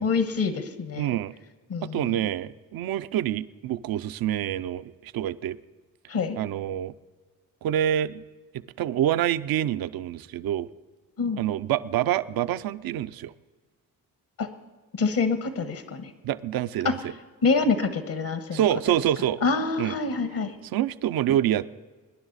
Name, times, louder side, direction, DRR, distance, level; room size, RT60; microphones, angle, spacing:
voice 1, 0.0-1.1 1.7-2.2 6.1-6.4 11.2-11.4 14.4-14.5 14.9-16.1 16.8-16.9 17.4-18.6 19.4-20.5, left 4 dB, 65° left, 10 dB, 1.3 m, -26 dB
voice 2, 1.0-1.3 1.8-5.6 6.4-6.9 7.6-8.2 8.8-10.7 11.4-13.3 16.2-17.0 18.5-19.4 19.8-19.9 20.7-21.7, right 11 dB, 70° right, 15 dB, 0.6 m, -26 dB
21.0 x 10.5 x 4.1 m, 1.4 s
supercardioid pair, 55°, 37 cm